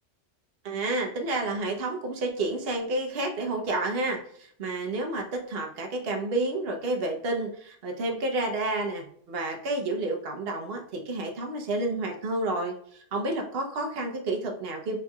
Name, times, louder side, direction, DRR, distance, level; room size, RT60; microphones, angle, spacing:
voice 1, 0.6-15.0, right 2 dB, 55° right, 2 dB, 1.0 m, -30 dB
4.5 x 3.7 x 2.3 m, 0.63 s
omnidirectional pair, 1.3 m